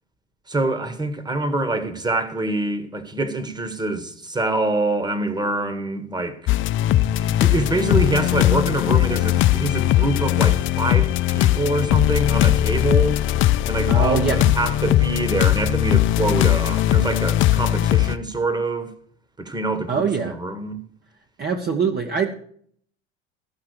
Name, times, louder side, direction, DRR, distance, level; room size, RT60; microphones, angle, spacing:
voice 1, 0.5-6.6 7.2-13.2 13.7-18.9 19.4-20.8, right 2 dB, 15° right, 1.5 m, -25 dB
sound 1, 6.5-18.2, left 14 dB, 40° left, 0.5 m, -19 dB
voice 2, 13.9-14.4 19.9-20.4 21.4-22.4, right 6 dB, 30° right, 1.0 m, -23 dB
14.0 x 5.8 x 6.5 m
hypercardioid pair, 85°, 32 cm